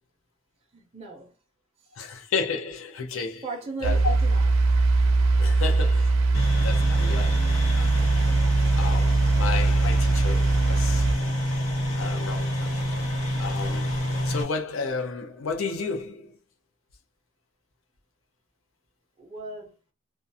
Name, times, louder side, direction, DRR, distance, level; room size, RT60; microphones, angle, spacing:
voice 1, 0.7-1.3 1.8-1.9 3.4-4.5 19.2-19.7, right 3 dB, 30° right, 0.5 m, -37 dB
voice 2, 1.9-3.5 3.8-4.1 5.4-8.0 8.8-11.1 11.9-12.9 13.4-13.9 14.2-16.4, left 4 dB, 70° left, 0.5 m, -32 dB
sound 1, 3.8-11.1, right 3 dB, 80° right, 0.5 m, -21 dB
sound 2, 6.3-14.4, equal, 90° left, 0.9 m, -28 dB
2.4 x 2.2 x 2.6 m
head